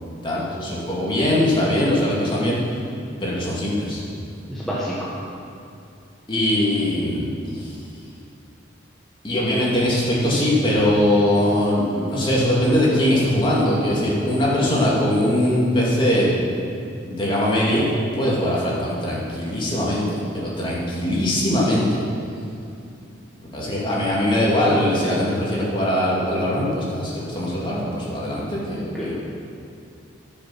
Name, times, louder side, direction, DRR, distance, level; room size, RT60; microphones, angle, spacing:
voice 1, 0.2-2.6 3.2-4.0 6.3-7.7 9.2-16.4 17.0-22.0 23.4-29.1, left 1 dB, 25° left, -6 dB, 2.4 m, -21 dB
voice 2, 4.5-5.1 29.0-29.1, equal, ahead, -9 dB, 1.4 m, -28 dB
13.5 x 6.7 x 6.2 m, 2.5 s
head